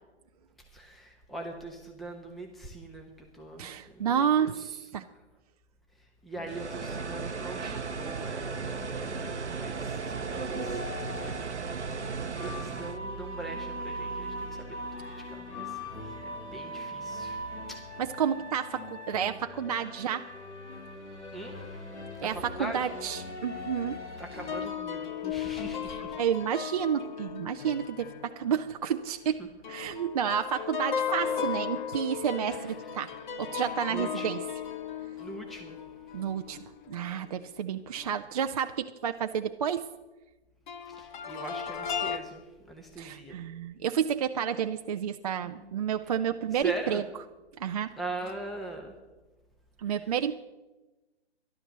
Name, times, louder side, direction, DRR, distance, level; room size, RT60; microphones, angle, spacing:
voice 1, 0.7-5.1 6.0-17.8 21.3-21.9 22.1-22.9 24.2-26.2 29.3-29.5 32.4-33.1 33.9-34.3 35.2-35.8 40.8-43.4 45.4-45.9 46.5-47.1 48.0-48.9 49.9-50.1, right 2 dB, ahead, 2 dB, 0.9 m, -42 dB
voice 2, 3.6-4.6 4.9-5.0 18.2-20.3 22.2-24.0 26.2-29.4 29.7-33.1 33.4-34.4 36.1-36.6 36.9-39.9 43.0-47.0 47.6-47.9 49.8-50.3, right 8 dB, 35° right, 7 dB, 0.4 m, -30 dB
sound 1, 6.3-24.6, left 1 dB, 85° left, 2.4 m, -41 dB
sound 2, 6.5-13.0, right 5 dB, 85° right, 0.7 m, -35 dB
sound 3, 24.3-29.4 29.6-37.4 38.0-38.1 40.7-42.2, left 8 dB, 45° left, 1.1 m, -36 dB
12.5 x 11.5 x 6.6 m, 1.1 s
figure-of-eight pair, 130°, 34 cm